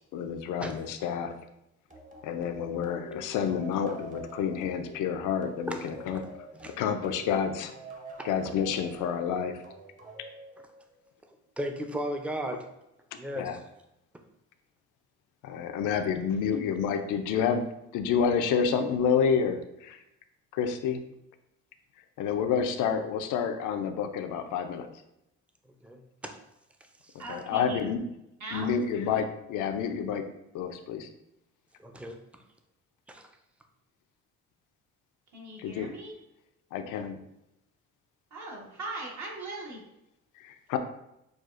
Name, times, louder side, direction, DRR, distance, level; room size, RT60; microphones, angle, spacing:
voice 1, 0.1-1.3 2.2-6.2 6.8-7.7 8.2-9.6 13.4-13.6 15.4-17.6 17.9-20.0 20.5-21.0 22.2-24.9 27.3-28.0 28.5-30.3 30.5-31.1 35.6-35.9 36.7-37.2 40.4-40.8, left 7 dB, 85° left, 7 dB, 0.5 m, -29 dB
sound 1, 1.9-11.1, right 2 dB, 25° right, 0.8 m, -47 dB
voice 2, 11.6-12.7 13.1-13.6 25.8-26.4 27.0-27.1 31.8-32.2 33.1-33.3, equal, 5° right, 5 dB, 0.4 m, -36 dB
voice 3, 27.2-27.9 28.4-28.7 35.3-36.1 38.3-39.8, right 2 dB, 65° right, -2 dB, 1.3 m, -39 dB
6.2 x 2.4 x 2.4 m, 0.86 s
cardioid pair, 90°, 30 cm